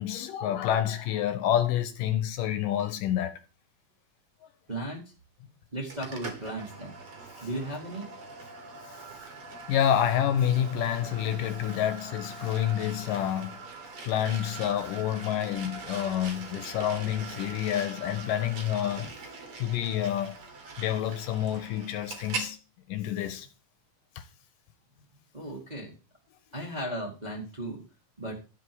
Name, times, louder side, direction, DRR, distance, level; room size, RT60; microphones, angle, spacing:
voice 1, 0.0-3.3 9.7-13.6 14.0-19.1 19.6-20.4 20.8-22.6 22.9-23.5, left 10 dB, 75° left, 2.4 m, -28 dB
voice 2, 4.7-5.0 5.7-6.9 7.4-8.1 19.0-19.1 25.3-26.0 26.5-27.8 28.2-28.3, right 1 dB, 15° right, 1.8 m, -35 dB
sound 1, 5.9-22.5, right 4 dB, 55° right, 2.7 m, -42 dB
12.0 x 4.8 x 6.1 m
omnidirectional pair, 4.0 m